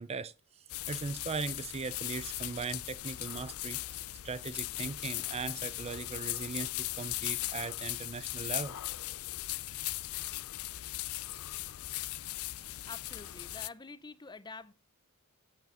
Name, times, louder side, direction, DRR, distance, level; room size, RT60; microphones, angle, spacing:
voice 1, 0.0-8.8, right 4 dB, 30° right, 0.4 m, -39 dB
sound 1, 0.7-13.7, left 16 dB, 80° left, 0.5 m, -38 dB
voice 2, 12.9-14.7, left 3 dB, 20° left, 0.6 m, -47 dB
9.1 x 8.2 x 4.8 m
head